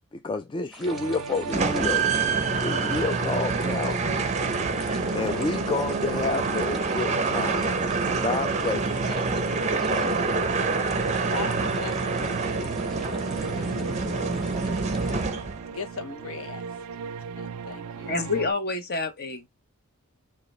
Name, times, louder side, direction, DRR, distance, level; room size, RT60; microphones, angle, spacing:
voice 1, 0.1-2.1 2.6-4.2 5.1-7.7 8.2-9.3 9.7-10.1, left 3 dB, 20° left, 0.3 m, -30 dB
sound 1, 0.7-15.3, right 1 dB, ahead, 1.0 m, -48 dB
sound 2, 0.8-18.5, right 6 dB, 85° right, 0.4 m, -36 dB
sound 3, 1.5-15.8, right 4 dB, 30° right, 0.6 m, -27 dB
voice 2, 4.8-5.4 11.3-15.3 15.7-16.7 17.3-18.2, left 4 dB, 65° left, 0.9 m, -40 dB
voice 3, 18.1-19.5, left 3 dB, 45° left, 1.1 m, -28 dB
6.8 x 2.4 x 3.2 m
head